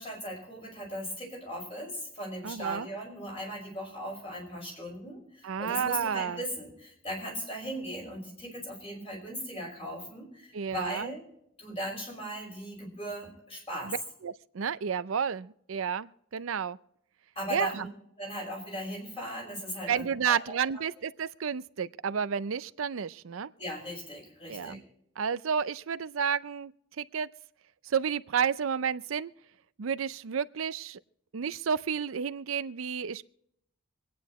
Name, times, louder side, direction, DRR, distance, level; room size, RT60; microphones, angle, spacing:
voice 1, 0.0-11.2 11.6-13.9 17.4-17.9 18.2-20.9 23.6-24.8, equal, 30° left, 5.5 m, -38 dB
voice 2, 2.4-2.9 5.4-6.4 10.5-11.1 13.8-14.0 14.2-16.8 17.5-17.9 19.9-23.5 24.5-24.8 25.2-26.7 27.0-27.3 27.9-29.3 29.8-31.0 31.3-33.2, right 7 dB, 85° right, 0.5 m, -31 dB
26.5 x 9.4 x 3.1 m
head